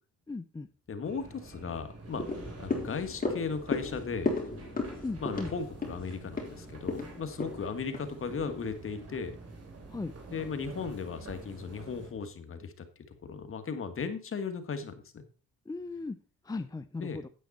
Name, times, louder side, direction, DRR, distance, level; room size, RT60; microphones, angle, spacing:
voice 1, 0.3-0.7 5.0-5.5 9.9-10.1 15.7-16.2 16.5-17.3, left 3 dB, 15° left, 11 dB, 0.5 m, -37 dB
voice 2, 0.9-2.2 2.6-4.3 5.2-9.4 10.3-12.7 13.1-15.2 17.0-17.2, left 5 dB, 45° left, 8 dB, 1.8 m, -36 dB
sound 1, 1.0-12.1, right 3 dB, 55° right, 3.6 m, -47 dB
sound 2, 2.1-8.6 9.0-9.1, left 3 dB, 30° left, 3.8 m, -35 dB
9.3 x 8.5 x 4.2 m, 0.37 s
cardioid pair, 90°, 30 cm